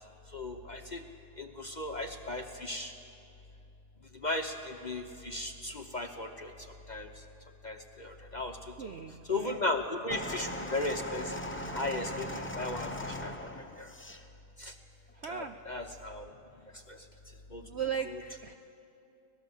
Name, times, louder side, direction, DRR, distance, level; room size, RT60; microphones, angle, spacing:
voice 1, 0.3-1.0 1.4-2.9 4.2-6.5 6.9-7.1 7.6-8.6 9.3-11.3 11.7-13.5 13.8-13.9 14.6-14.7 15.2-16.3 16.9-17.0 17.5-17.6 18.1-18.2, left 2 dB, 35° left, 5 dB, 0.8 m, -36 dB
voice 2, 8.8-9.6 15.2-15.6 17.6-18.5, right 7 dB, 65° right, 8 dB, 0.7 m, -37 dB
sound 1, 10.1-14.2 15.1-15.2, left 1 dB, 10° left, 0.7 m, -39 dB
24.5 x 18.5 x 7.3 m, 2.7 s
omnidirectional pair, 1.8 m